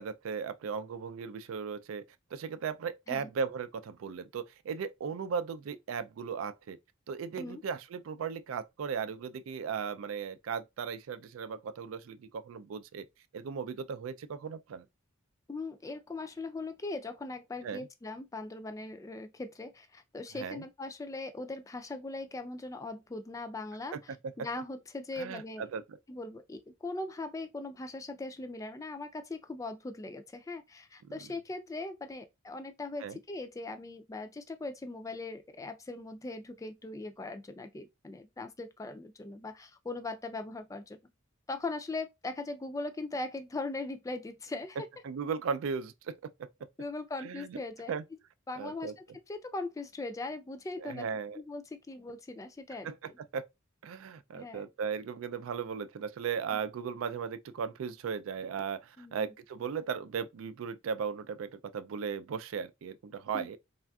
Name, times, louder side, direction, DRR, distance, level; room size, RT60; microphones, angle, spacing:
voice 1, 0.0-2.0 2.3-6.8 7.1-13.1 13.3-14.9 17.6-17.9 20.3-20.7 23.9-24.0 25.2-26.0 33.0-33.2 45.0-46.3 47.2-47.6 47.9-48.0 48.6-48.9 50.8-51.4 52.8-53.5 53.8-63.6, right 6 dB, 85° right, 0.3 m, -37 dB
voice 2, 15.5-25.7 26.1-41.0 41.5-44.8 46.8-48.0 48.5-51.1 51.3-53.2 54.4-54.6 56.5-56.6 59.0-59.3 63.3-63.5, left 2 dB, 15° left, 0.3 m, -40 dB
3.4 x 2.5 x 2.2 m
head